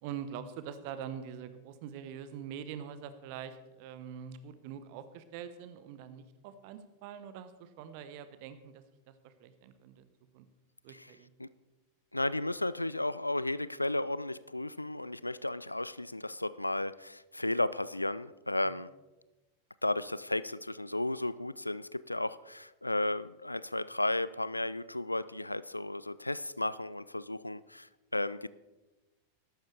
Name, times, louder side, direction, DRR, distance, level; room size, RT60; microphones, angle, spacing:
voice 1, 0.0-10.1 10.3-10.5 10.8-11.3 18.6-18.8, right 8 dB, 45° right, 12 dB, 0.9 m, -44 dB
voice 2, 12.1-18.9 19.8-28.5, left 1 dB, 85° left, 18 dB, 0.3 m, -34 dB
14.0 x 12.0 x 3.4 m, 1.1 s
figure-of-eight pair, 90°, 0 cm